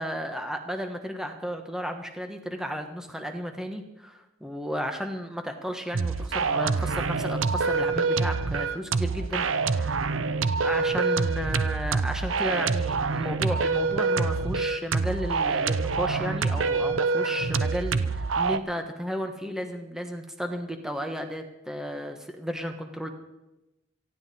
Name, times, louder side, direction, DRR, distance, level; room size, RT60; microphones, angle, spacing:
voice 1, 0.0-10.0 10.6-23.1, equal, 5° right, 5 dB, 1.1 m, -33 dB
sound 1, 5.9-18.6, right 4 dB, 85° right, 0.7 m, -26 dB
18.5 x 15.0 x 4.2 m, 0.98 s
head